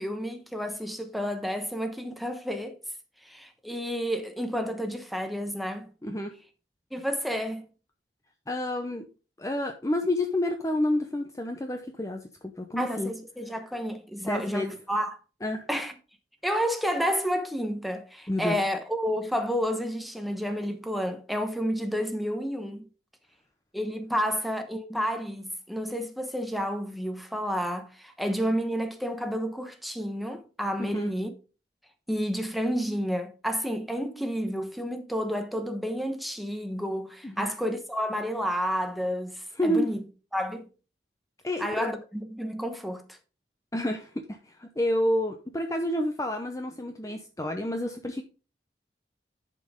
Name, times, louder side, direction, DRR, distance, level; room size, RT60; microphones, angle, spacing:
voice 1, 0.0-2.8 3.3-5.9 6.9-7.6 12.8-15.2 15.7-15.9 16.4-22.8 23.7-31.3 32.1-40.0 40.3-40.7 41.6-43.0, equal, ahead, 1.0 m, -30 dB
voice 2, 6.0-6.3 8.5-9.1 9.4-13.1 14.2-14.7 15.4-15.7 18.3-18.6 30.8-31.1 37.2-37.5 39.5-39.9 41.4-41.9 43.7-48.2, left 1 dB, 20° left, 0.6 m, -29 dB
11.0 x 5.3 x 3.6 m
head